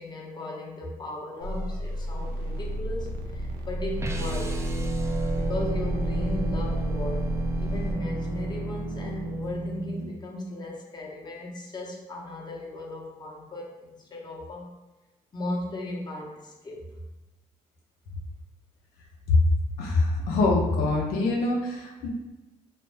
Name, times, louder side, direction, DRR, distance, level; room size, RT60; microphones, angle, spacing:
voice 1, 0.0-4.6 5.3-7.3 7.6-14.7 15.3-16.9 22.0-22.1, left 1 dB, 25° left, -2 dB, 0.7 m, -36 dB
sound 1, 1.4-7.9, equal, 90° right, 0.4 m, -32 dB
sound 2, 4.0-10.1, right 2 dB, 20° right, 0.3 m, -31 dB
voice 2, 19.8-22.1, left 3 dB, 90° left, -1 dB, 0.5 m, -24 dB
2.4 x 2.1 x 3.1 m, 1.1 s
cardioid pair, 75°, 16 cm